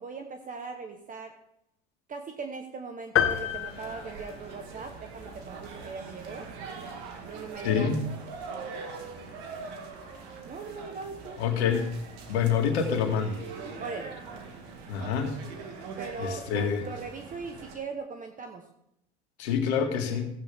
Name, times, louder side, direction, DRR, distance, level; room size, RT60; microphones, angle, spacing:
voice 1, 0.0-1.3 2.1-6.5 7.2-7.9 10.5-11.4 13.8-14.1 16.0-18.7, right 4 dB, 25° right, 5 dB, 1.1 m, -39 dB
sound 1, 3.1-17.8, right 4 dB, 60° right, 2.4 m, -42 dB
sound 2, 3.2-4.9, left 10 dB, 40° left, 1.2 m, -29 dB
voice 2, 7.6-8.0 11.4-11.9 12.3-13.4 14.9-15.3 16.2-16.8 19.4-20.3, left 7 dB, 75° left, 4 dB, 2.2 m, -26 dB
15.5 x 8.8 x 3.6 m, 0.77 s
hypercardioid pair, 95°, 33 cm